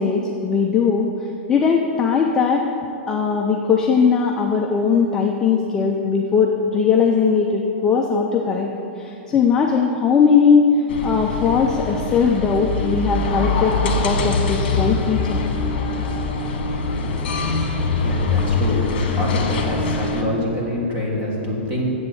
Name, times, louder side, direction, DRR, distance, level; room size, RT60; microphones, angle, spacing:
voice 1, 0.0-2.6 3.1-8.7 9.0-15.4, left 5 dB, 10° left, 0 dB, 0.3 m, -19 dB
sound 1, 10.9-20.2, left 3 dB, 55° left, 1.4 m, -23 dB
voice 2, 18.0-18.8 19.1-21.9, left 1 dB, 20° right, -3 dB, 1.6 m, -25 dB
7.9 x 6.9 x 7.8 m, 2.7 s
supercardioid pair, 175°, 6 cm